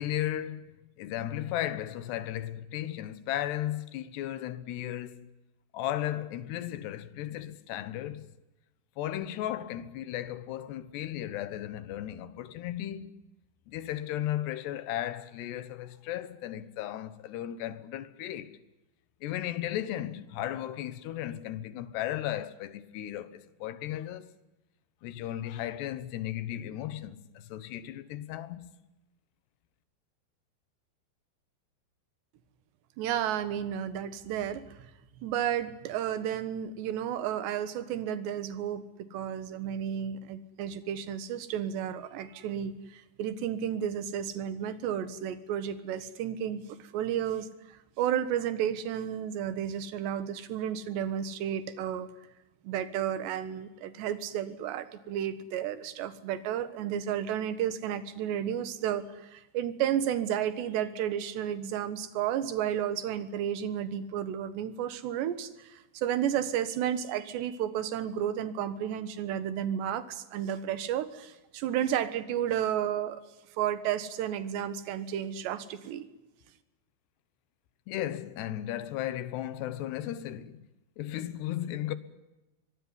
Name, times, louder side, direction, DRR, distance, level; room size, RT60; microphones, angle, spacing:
voice 1, 0.0-5.3 5.7-8.3 9.0-13.2 13.7-18.6 19.2-24.3 25.0-28.7 77.9-80.7 81.0-81.9, left 12 dB, 80° left, 3.3 m, -35 dB
voice 2, 33.0-34.8 35.2-38.8 39.1-52.1 52.6-73.2 73.6-76.1, right 10 dB, 85° right, 3.7 m, -32 dB
24.0 x 20.0 x 9.8 m
omnidirectional pair, 4.9 m